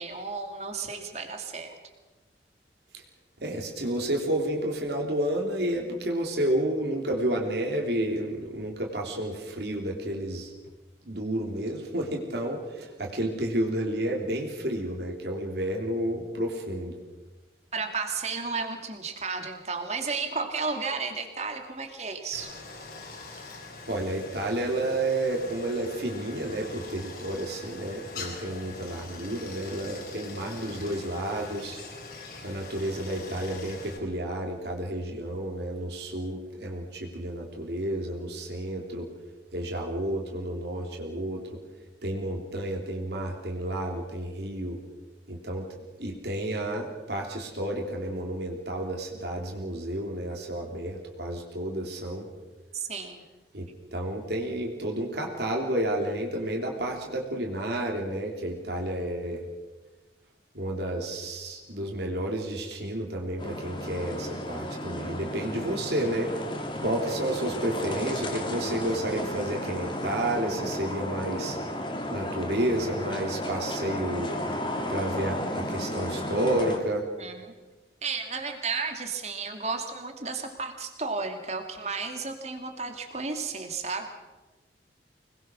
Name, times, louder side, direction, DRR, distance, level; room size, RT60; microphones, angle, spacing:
voice 1, 0.0-1.8 17.7-22.5 52.7-53.2 77.2-77.5 78.0-84.1, right 4 dB, 35° right, 5 dB, 2.7 m, -33 dB
voice 2, 3.4-10.5 11.1-17.0 23.9-31.8 32.4-39.1 39.5-41.6 42.0-44.8 45.3-45.7 46.0-52.3 53.5-59.4 60.5-66.3 66.8-71.6 72.1-74.3 74.9-77.0, right 1 dB, 65° right, 0 dB, 3.3 m, -31 dB
Stream, 22.3-34.0, left 3 dB, 55° left, 4.6 m, -43 dB
sound 1, 63.4-76.8, left 1 dB, 25° left, 2.8 m, -33 dB
25.5 x 20.5 x 6.3 m, 1.2 s
head